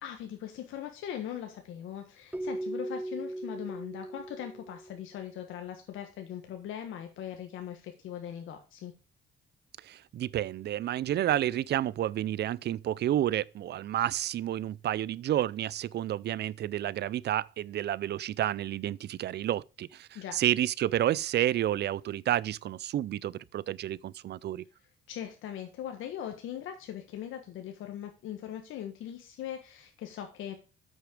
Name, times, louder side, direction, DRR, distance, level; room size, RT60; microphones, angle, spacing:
voice 1, 0.0-8.9 20.1-20.4 25.1-30.5, left 10 dB, 85° left, 1.4 m, -40 dB
Keyboard (musical), 2.3-5.2, right 1 dB, 5° right, 0.6 m, -38 dB
voice 2, 9.8-24.6, right 12 dB, 60° right, 0.4 m, -30 dB
8.5 x 6.4 x 4.9 m
cardioid pair, 90°, 20 cm